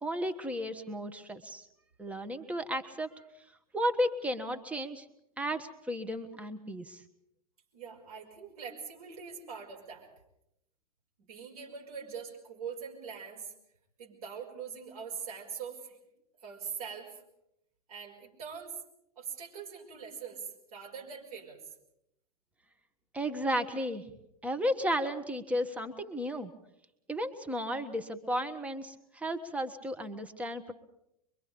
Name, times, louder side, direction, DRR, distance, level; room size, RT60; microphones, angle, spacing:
voice 1, 0.0-1.6 2.0-3.1 3.7-5.0 5.4-7.0 23.1-24.0 24.4-26.5 27.1-30.7, equal, 5° right, 8 dB, 1.4 m, -33 dB
voice 2, 7.7-10.1 11.2-13.5 14.0-16.0 16.4-17.2 17.9-18.8 19.2-21.7, right 6 dB, 65° right, -2 dB, 5.5 m, -43 dB
24.5 x 23.0 x 5.2 m, 0.79 s
figure-of-eight pair, 90°, 20 cm